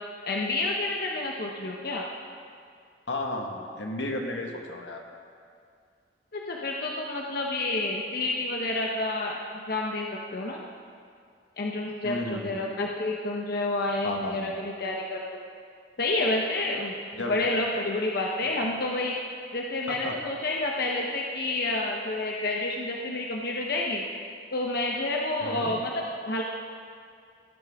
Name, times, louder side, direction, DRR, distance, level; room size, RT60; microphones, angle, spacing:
voice 1, 0.2-2.1 6.3-10.6 11.6-15.2 16.0-19.1 19.5-24.0 24.5-26.4, left 2 dB, 60° left, -1 dB, 0.9 m, -29 dB
voice 2, 3.1-5.0 12.0-12.6 14.0-14.5 17.2-17.6 19.9-20.1 25.4-25.7, left 1 dB, 85° left, 2 dB, 1.5 m, -33 dB
17.5 x 11.0 x 3.6 m, 2.2 s
head